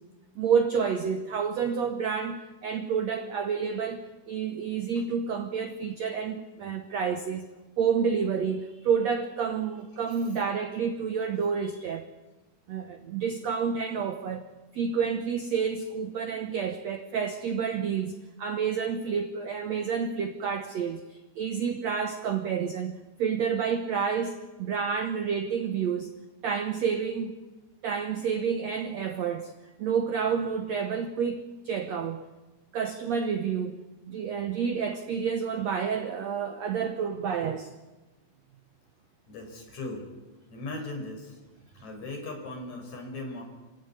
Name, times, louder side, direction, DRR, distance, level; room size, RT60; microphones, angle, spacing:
voice 1, 0.4-7.5 7.8-12.1 12.7-14.5 14.7-26.1 26.4-27.4 27.8-29.5 29.8-32.2 32.7-33.8 34.1-37.7, right 6 dB, 70° right, 1.6 m, -29 dB
voice 2, 39.3-40.1 40.5-41.3 41.8-43.4, left 2 dB, 45° left, 6.0 m, -38 dB
25.5 x 16.5 x 9.7 m
omnidirectional pair, 4.5 m